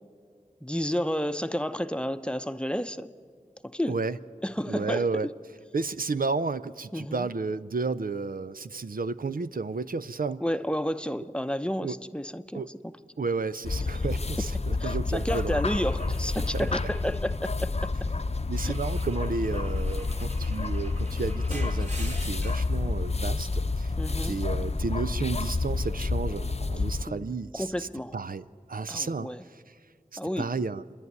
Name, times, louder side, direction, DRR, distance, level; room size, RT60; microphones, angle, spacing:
voice 1, 0.6-3.1 3.6-4.0 4.4-5.1 6.9-7.3 10.4-12.9 14.8-17.9 18.6-18.7 24.0-24.4 27.1-28.1 28.9-29.4 30.2-30.5, equal, 5° left, 11 dB, 0.7 m, -31 dB
voice 2, 3.9-4.2 4.7-5.3 5.7-10.4 11.8-12.0 12.5-12.7 13.2-15.6 16.5-16.7 18.5-23.9 24.2-29.8 30.1-30.9, right 4 dB, 75° right, 14 dB, 0.5 m, -32 dB
sound 1, 13.6-27.0, left 3 dB, 45° left, 0.7 m, -29 dB
Car / Engine / Glass, 15.7-17.9 18.6-22.8, right 1 dB, 50° right, 3.5 m, -45 dB
29.0 x 11.0 x 9.5 m, 2.1 s
wide cardioid pair, 50°, 15 cm